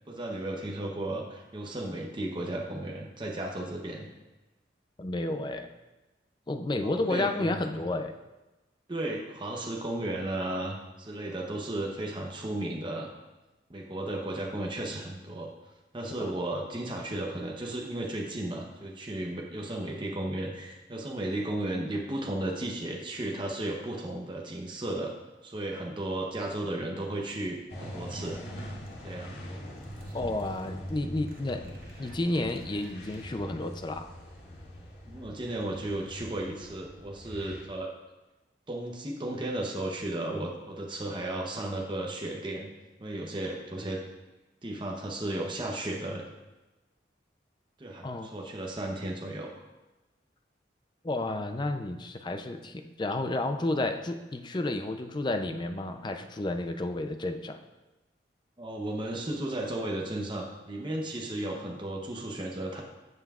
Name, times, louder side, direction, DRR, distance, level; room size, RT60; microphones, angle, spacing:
voice 1, 0.1-4.1 6.8-7.8 8.9-13.1 13.7-15.5 15.9-25.1 25.4-28.4 29.0-29.3 35.1-37.9 38.7-42.7 43.0-44.0 44.6-46.2 47.8-49.5 58.6-62.8, right 1 dB, 25° right, -1 dB, 0.8 m, -34 dB
voice 2, 5.0-5.7 6.5-8.1 16.2-16.3 30.1-31.7 32.0-34.1 48.0-48.3 51.0-57.6, left 2 dB, 25° left, 7 dB, 0.4 m, -31 dB
sound 1, 27.0-33.4, right 1 dB, 50° right, 1.2 m, -56 dB
sound 2, 27.7-37.6, equal, 65° left, 2.3 m, -43 dB
15.5 x 5.6 x 2.4 m, 1.1 s
head